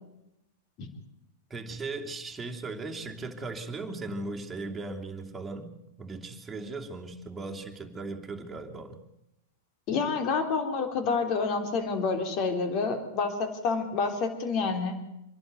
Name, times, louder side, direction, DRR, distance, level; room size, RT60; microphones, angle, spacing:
voice 1, 1.5-5.7 6.0-9.0, right 3 dB, 15° right, 1 dB, 2.8 m, -37 dB
voice 2, 9.9-15.0, left 4 dB, 45° left, 7 dB, 3.7 m, -28 dB
26.0 x 11.5 x 9.4 m, 0.86 s
hypercardioid pair, 115°, 0 cm